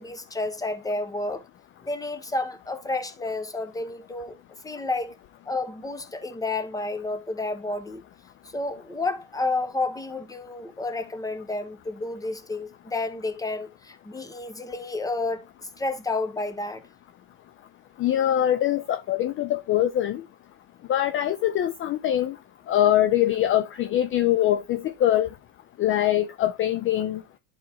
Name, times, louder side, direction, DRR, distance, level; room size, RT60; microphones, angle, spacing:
voice 1, 0.0-1.4 1.8-4.3 4.6-5.1 5.5-8.0 8.5-15.5 15.8-16.8, left 2 dB, 10° left, 1.0 m, -30 dB
voice 2, 18.0-20.2 20.9-22.4 22.7-25.3 25.8-27.2, left 12 dB, 35° left, 0.5 m, -23 dB
11.0 x 4.3 x 2.9 m
supercardioid pair, 115°, 36 cm